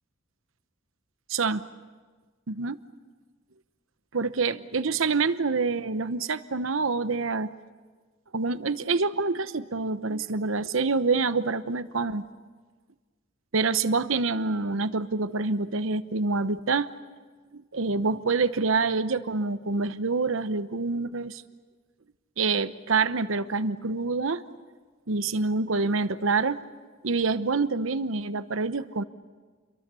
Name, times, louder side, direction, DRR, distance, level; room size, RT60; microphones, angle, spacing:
voice 1, 1.3-1.6 2.5-2.8 4.1-7.5 8.3-12.3 13.5-16.9 17.5-21.4 22.4-24.4 25.1-26.6 27.0-29.0, right 4 dB, 80° right, 13 dB, 0.9 m, -26 dB
29.5 x 23.0 x 6.9 m, 1.4 s
head